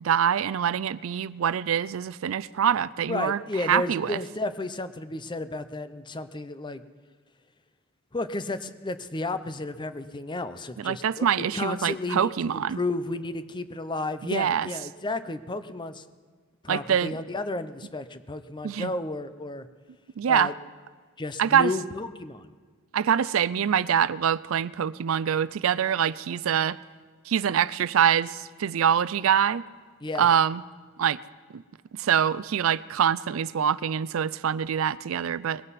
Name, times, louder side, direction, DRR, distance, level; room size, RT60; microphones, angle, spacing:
voice 1, 0.0-4.2 10.8-12.8 14.2-14.7 16.7-17.2 18.6-18.9 20.2-20.5 21.4-21.7 22.9-26.8 27.3-29.6 30.2-30.6 31.0-31.2 31.5-31.6 31.9-35.6, right 8 dB, 70° right, 0.4 m, -24 dB
voice 2, 3.1-6.8 8.1-16.0 16.6-19.7 20.3-20.5 21.2-22.5 30.0-30.3, left 2 dB, 20° left, 0.6 m, -32 dB
21.0 x 16.5 x 4.2 m
head